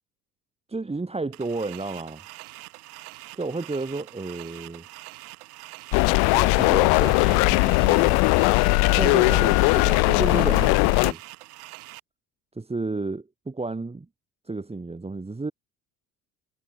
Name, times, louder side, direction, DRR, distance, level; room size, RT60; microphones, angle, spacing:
voice 1, 0.7-2.2 3.4-4.9 6.3-8.4 8.9-11.2 12.5-14.1 14.4-15.5, right 3 dB, 15° right, 1.9 m, -32 dB
sound 1, 1.3-12.0, right 18 dB, 85° right, 3.2 m, -44 dB
sound 2, 5.9-11.1, left 31 dB, 60° left, 0.5 m, -19 dB
hypercardioid pair, 70°, 43 cm